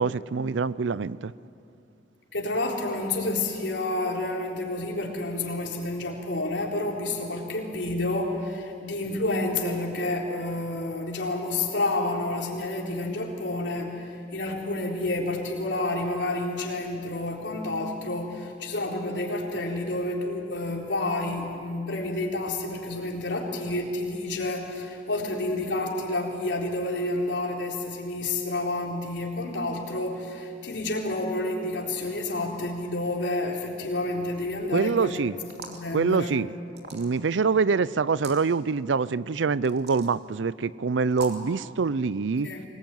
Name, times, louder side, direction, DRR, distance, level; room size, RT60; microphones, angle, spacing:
voice 1, 0.0-1.3 34.7-35.3 35.9-36.5 36.9-42.5, right 5 dB, 80° right, 19 dB, 0.5 m, -25 dB
voice 2, 2.3-35.2 35.6-36.4 42.4-42.7, left 2 dB, 70° left, -1 dB, 4.0 m, -29 dB
sound 1, 35.4-35.9 36.7-37.3 38.1-38.4 39.7-40.1 41.1-41.5, right 3 dB, 60° right, 2.8 m, -40 dB
24.5 x 20.0 x 9.3 m, 2.5 s
head